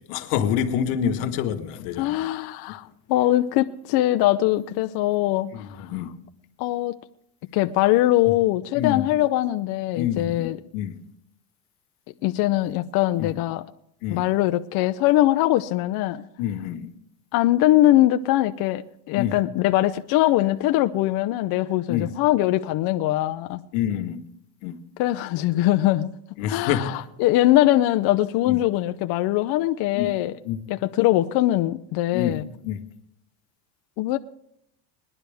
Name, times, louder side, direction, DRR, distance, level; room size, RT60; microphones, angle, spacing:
voice 1, 0.0-2.3 5.5-6.1 8.2-8.3 8.7-9.1 9.9-11.0 13.2-13.4 14.0-14.3 16.4-16.9 19.2-19.4 21.9-22.1 23.7-24.2 24.6-24.8 26.4-27.0 28.4-28.6 29.9-30.1 30.4-30.6 32.1-32.8, left 9 dB, 90° left, 1.5 m, -27 dB
voice 2, 2.0-5.9 6.6-7.0 7.5-10.6 12.2-13.6 14.1-16.2 17.3-23.6 25.0-26.1 26.5-30.3 30.7-32.4 34.0-34.2, left 15 dB, 55° left, 0.6 m, -22 dB
20.5 x 11.0 x 3.4 m
cardioid pair, 145°, 45 cm